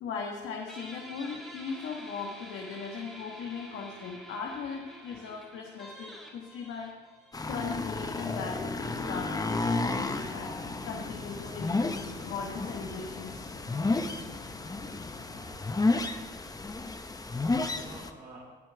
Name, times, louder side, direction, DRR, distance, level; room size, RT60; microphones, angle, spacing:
voice 1, 0.0-6.9 7.5-10.5 10.8-13.5, left 5 dB, 80° left, -1 dB, 1.4 m, -38 dB
Guitar, 0.7-7.9, right 1 dB, ahead, 3.0 m, -48 dB
sound 1, 7.3-18.1, left 3 dB, 20° left, 0.8 m, -32 dB
Waves surf, 9.8-15.5, left 4 dB, 65° left, 3.8 m, -45 dB
voice 2, 15.2-16.3 17.7-18.5, right 2 dB, 45° right, -4 dB, 2.8 m, -51 dB
20.0 x 7.2 x 3.4 m, 1.4 s
cardioid pair, 90°, 20 cm